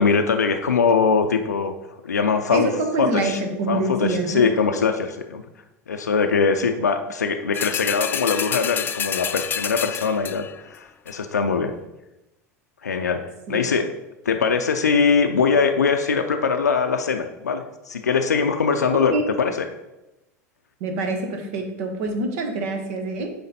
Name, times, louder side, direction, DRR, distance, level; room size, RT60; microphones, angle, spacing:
voice 1, 0.0-1.7 2.0-2.7 3.0-3.4 3.7-5.4 5.9-11.7 12.8-13.9 14.3-19.6, left 5 dB, 90° left, 6 dB, 0.5 m, -22 dB
voice 2, 2.5-4.5 13.5-13.6 18.9-19.2 20.8-23.3, right 2 dB, 65° right, 4 dB, 1.3 m, -25 dB
sound 1, 7.5-10.6 11.1-11.2, left 8 dB, 25° left, 0.3 m, -28 dB
8.7 x 3.3 x 4.2 m, 0.96 s
hypercardioid pair, 85°, 9 cm